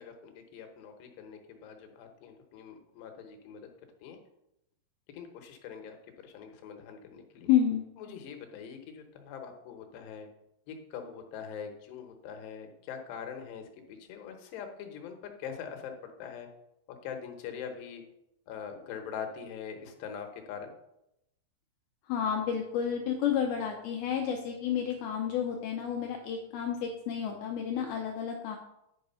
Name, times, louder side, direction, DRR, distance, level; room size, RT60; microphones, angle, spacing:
voice 1, 0.0-3.7 4.0-4.2 5.1-7.5 8.0-10.3 10.7-16.5 17.0-18.0 18.5-20.7, left 7 dB, 75° left, 5 dB, 2.8 m, -43 dB
voice 2, 7.5-7.8 22.1-28.6, left 8 dB, 90° left, 2 dB, 2.1 m, -30 dB
10.5 x 4.9 x 5.5 m, 0.84 s
omnidirectional pair, 5.4 m